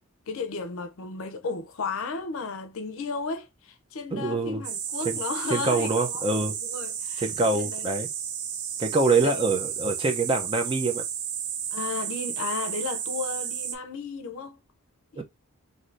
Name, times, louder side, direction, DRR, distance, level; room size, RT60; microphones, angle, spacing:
voice 1, 0.3-6.3 6.6-7.3 7.5-7.8 9.2-9.4 11.7-14.6 15.1-15.2, left 4 dB, 70° left, 0.5 m, -34 dB
voice 2, 4.1-4.6 5.0-5.2 5.5-6.5 7.2-8.1 8.8-11.0 15.2-15.3, right 3 dB, 25° right, 0.6 m, -25 dB
sound 1, 4.6-13.8, right 8 dB, 80° right, 0.6 m, -33 dB
2.6 x 2.6 x 3.2 m
head